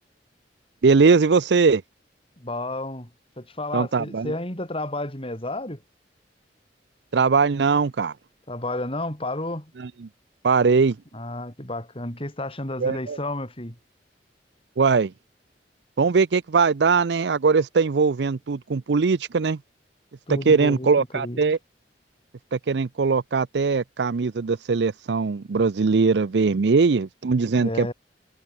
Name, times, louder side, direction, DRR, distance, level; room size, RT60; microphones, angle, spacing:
voice 1, 0.8-1.8 3.7-4.3 7.1-8.1 9.8-10.1 10.4-11.0 12.8-13.2 14.8-15.1 16.0-19.6 20.3-21.6 22.5-27.9, right 4 dB, 70° right, 0.5 m, -21 dB
voice 2, 2.4-3.1 3.4-5.8 8.5-9.7 11.1-13.8 20.3-21.4 27.6-27.9, left 1 dB, 35° left, 7.8 m, -31 dB
head